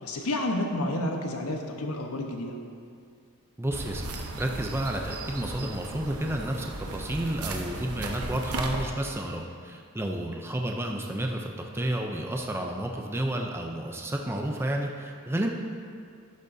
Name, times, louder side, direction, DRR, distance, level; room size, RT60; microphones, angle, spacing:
voice 1, 0.0-2.6, left 1 dB, 80° left, 2 dB, 1.1 m, -30 dB
voice 2, 3.6-4.1 4.4-15.5, right 1 dB, 10° right, 1 dB, 0.5 m, -31 dB
sound 1, 3.7-8.8, right 2 dB, 85° right, 0.9 m, -36 dB
11.5 x 10.5 x 2.7 m, 2.3 s
head